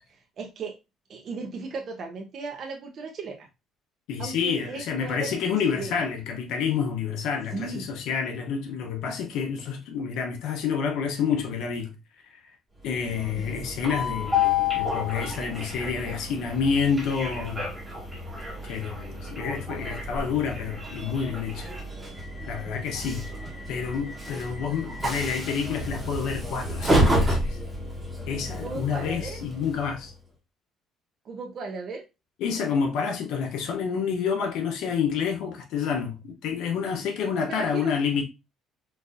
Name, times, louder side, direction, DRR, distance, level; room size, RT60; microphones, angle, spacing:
voice 1, 0.1-0.8 1.1-3.5 4.2-5.9 7.5-7.8 13.3-13.7 23.1-23.2 28.6-29.4 31.2-32.0 37.4-37.9, right 4 dB, 45° right, 0.6 m, -36 dB
voice 2, 4.1-11.9 12.3-12.4 12.8-17.7 18.7-21.7 22.5-23.3 23.7-27.6 28.3-30.1 32.4-38.2, left 6 dB, 80° left, 0.6 m, -28 dB
Train, 12.8-30.1, left 1 dB, 10° right, 1.0 m, -30 dB
4.0 x 2.5 x 2.5 m
cardioid pair, 130°, 0 cm